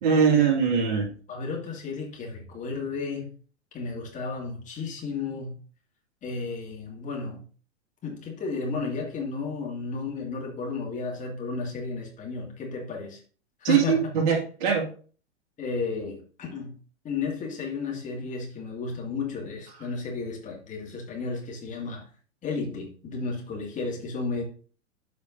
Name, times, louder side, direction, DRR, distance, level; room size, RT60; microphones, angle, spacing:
voice 1, 0.0-1.1 13.6-14.9, right 7 dB, 40° right, 1 dB, 2.0 m, -22 dB
voice 2, 1.3-3.3 3.7-5.6 6.2-7.4 8.0-13.2 13.6-14.1 15.6-16.7 17.0-22.0 22.4-24.4, left 4 dB, 20° left, -1 dB, 2.1 m, -33 dB
12.5 x 5.1 x 2.6 m, 0.42 s
figure-of-eight pair, 100°, 36 cm